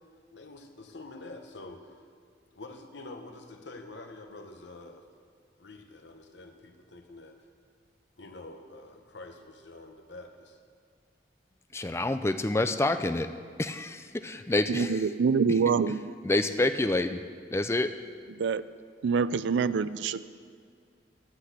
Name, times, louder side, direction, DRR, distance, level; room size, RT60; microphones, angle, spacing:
voice 1, 0.3-1.9 2.5-5.0 5.6-7.4 8.2-10.6, left 2 dB, 75° left, 5 dB, 1.0 m, -46 dB
voice 2, 11.7-13.3 13.6-15.0 16.2-17.2 17.5-17.9, left 2 dB, 15° left, 9 dB, 0.4 m, -27 dB
voice 3, 14.7-16.1 18.4-18.6 19.0-20.2, right 5 dB, 75° right, 16 dB, 0.4 m, -26 dB
11.0 x 6.0 x 8.1 m, 2.1 s
head